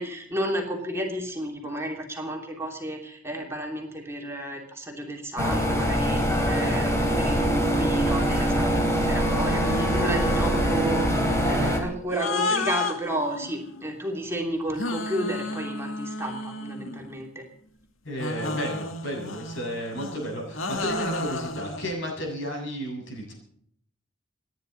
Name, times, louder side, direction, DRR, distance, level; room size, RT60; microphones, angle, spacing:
voice 1, 0.0-17.4, right 1 dB, 15° right, -1 dB, 3.1 m, -32 dB
sound 1, 5.4-11.8, equal, 15° left, 3.7 m, -23 dB
sound 2, 9.2-10.9 12.1-13.9 14.7-17.3 18.2-21.9, left 3 dB, 85° left, 1.7 m, -32 dB
voice 2, 18.0-23.3, equal, 70° left, 0 dB, 7.7 m, -33 dB
29.5 x 10.5 x 4.1 m, 0.66 s
head